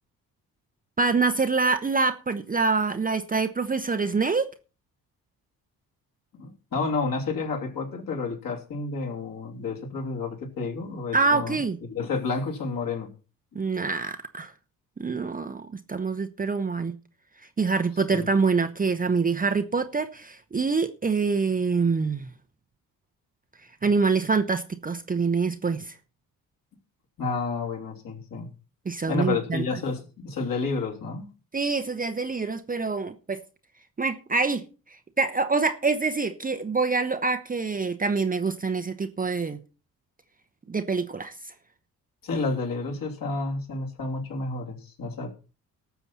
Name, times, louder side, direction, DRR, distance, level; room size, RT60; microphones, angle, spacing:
voice 1, 1.0-4.5 11.1-11.8 13.5-14.5 15.0-16.9 17.6-22.3 23.8-25.9 28.8-29.6 31.5-33.4 34.0-39.6 40.7-41.5, right 4 dB, 20° right, 0.9 m, -25 dB
voice 2, 6.3-11.6 11.9-13.1 13.5-13.6 18.1-18.3 27.2-28.5 29.1-31.3 42.2-45.4, left 3 dB, 45° left, 3.1 m, -30 dB
18.5 x 7.0 x 4.3 m
figure-of-eight pair, 45°, 45 cm